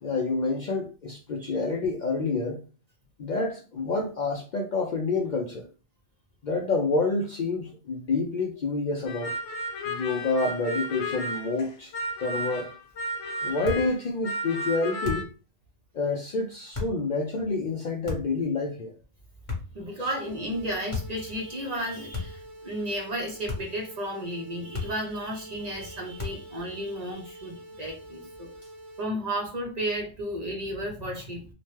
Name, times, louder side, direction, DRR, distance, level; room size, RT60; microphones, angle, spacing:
voice 1, 0.0-2.6 3.2-5.7 6.4-9.4 9.9-11.9 12.2-12.7 13.4-15.3 15.9-19.0 20.0-20.1, left 3 dB, 60° left, 0.5 m, -28 dB
sound 1, 9.1-11.7 11.9-14.0 14.2-15.2, equal, 85° left, 0.9 m, -33 dB
sound 2, 13.6-13.9 15.0-15.4 16.7-17.0 18.0-18.4 19.5-19.9 20.9-21.2 22.1-22.5 23.5-23.8 24.7-25.1 26.2-26.5, left 4 dB, 30° left, 0.9 m, -35 dB
voice 2, 19.7-28.5 29.0-31.5, equal, 40° right, 0.7 m, -33 dB
sound 3, 20.0-29.0, right 1 dB, 80° right, 1.4 m, -47 dB
2.9 x 2.1 x 3.1 m
omnidirectional pair, 1.2 m